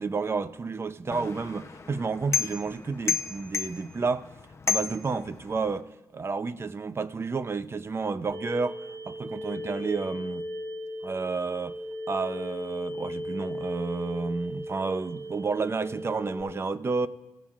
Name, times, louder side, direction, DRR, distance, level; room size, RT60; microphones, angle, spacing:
voice 1, 0.0-4.3 4.7-5.9 6.1-8.8 9.1-10.5 11.0-11.8 12.1-17.1, right 4 dB, 35° right, 0.6 m, -31 dB
sound 1, 1.1-5.8, left 7 dB, 40° left, 0.7 m, -33 dB
sound 2, 8.3-16.4, equal, ahead, 6.6 m, -37 dB
29.5 x 16.0 x 2.5 m
cardioid pair, 95°, 8 cm